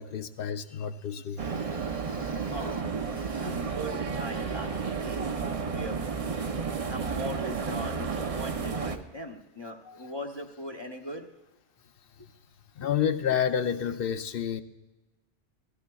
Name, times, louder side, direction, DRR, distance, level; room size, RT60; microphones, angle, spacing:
voice 1, 0.0-1.4 2.1-2.5 9.9-10.0 12.8-14.6, left 8 dB, 60° left, 9 dB, 0.7 m, -30 dB
sound 1, 1.4-9.0, right 5 dB, 40° right, 0.6 m, -32 dB
voice 2, 2.5-6.4 6.9-11.3, equal, 25° left, 1 dB, 0.8 m, -40 dB
19.5 x 15.0 x 2.3 m, 1.1 s
omnidirectional pair, 1.2 m